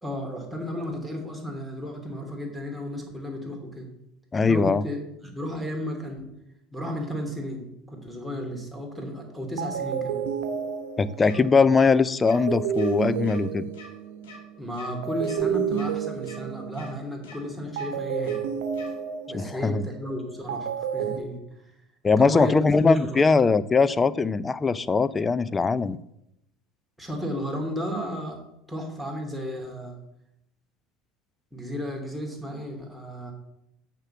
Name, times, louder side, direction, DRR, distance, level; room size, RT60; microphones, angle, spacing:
voice 1, 0.0-3.9 4.4-6.3 6.7-10.2 14.6-18.4 19.3-21.7 22.2-22.7 23.0-23.2 27.0-28.4 28.7-30.0 31.5-33.3, equal, ahead, 0 dB, 2.9 m, -34 dB
voice 2, 4.3-4.8 11.0-13.7 19.3-19.8 22.0-26.0, left 4 dB, 25° left, 17 dB, 0.5 m, -21 dB
sound 1, 9.1-9.3 9.6-14.5 15.0-17.2 17.8-21.2, right 7 dB, 80° right, 0.9 m, -31 dB
sound 2, 11.2-11.4 11.7-11.9 12.2-12.4 12.7-12.9 13.2-13.4 13.7-13.9 14.2-14.4 14.7-14.9 15.2-15.4 15.7-15.9 16.2-16.4 16.7-16.9 17.2-17.4 17.7-17.9 18.2-18.4 18.7-18.9, left 3 dB, 80° left, 2.6 m, -45 dB
6.6 x 6.0 x 7.1 m, 0.81 s
hypercardioid pair, 80°, 0 cm